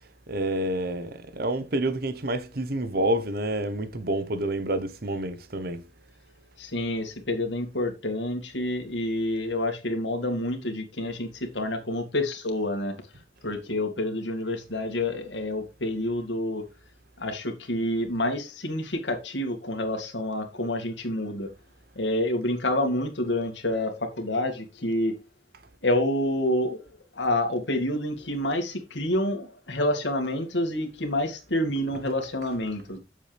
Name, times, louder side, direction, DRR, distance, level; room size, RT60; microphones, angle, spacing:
voice 1, 0.3-5.8, right 1 dB, 55° right, 1.0 m, -28 dB
voice 2, 6.6-12.9 13.4-16.6 17.2-21.5 22.0-25.1 25.8-26.8 27.2-33.0, left 1 dB, 85° left, 2.2 m, -28 dB
8.5 x 7.2 x 3.4 m
head